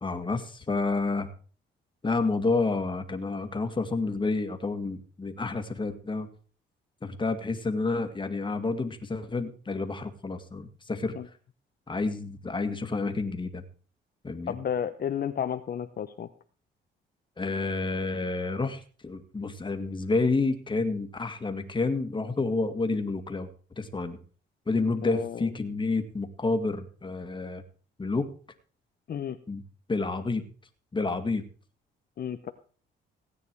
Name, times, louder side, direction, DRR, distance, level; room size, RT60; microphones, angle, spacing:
voice 1, 0.0-1.3 2.0-6.3 7.0-11.2 11.9-13.6 14.2-14.5 17.4-23.5 23.8-24.2 24.7-27.6 28.0-28.3 29.5-29.6 29.9-30.5 30.9-31.4, left 3 dB, 25° left, 8 dB, 2.2 m, -29 dB
voice 2, 14.5-16.3 25.0-25.5 29.1-29.4 32.2-32.5, left 9 dB, 50° left, 8 dB, 1.0 m, -32 dB
17.0 x 9.4 x 4.7 m, 0.41 s
cardioid pair, 90°, 20 cm